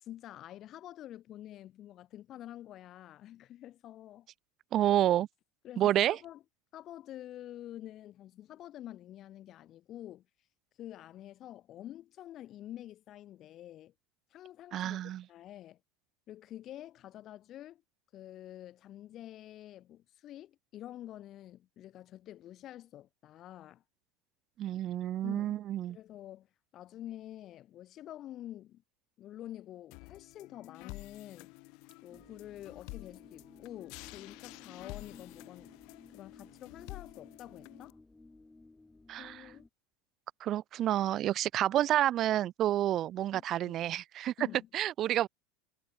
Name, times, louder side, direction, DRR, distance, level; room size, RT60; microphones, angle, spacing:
voice 1, 0.0-4.3 5.6-6.4 6.7-10.2 10.8-13.9 14.3-15.8 16.3-17.8 18.1-23.8 25.2-25.6 25.9-26.5 26.7-28.8 29.2-31.5 32.0-35.8 36.1-38.0 39.2-39.7 43.3-43.8 44.4-44.7, left 13 dB, 45° left, 1.5 m, -48 dB
voice 2, 4.7-5.3 5.8-6.2 14.7-15.2 24.6-26.0 39.1-39.5 40.4-44.3 44.7-45.3, right 12 dB, 45° right, 0.6 m, -29 dB
sound 1, 29.9-37.9, left 29 dB, 65° left, 0.6 m, -50 dB
sound 2, 32.1-39.7, left 2 dB, 10° left, 3.1 m, -58 dB
hypercardioid pair, 95°, 0 cm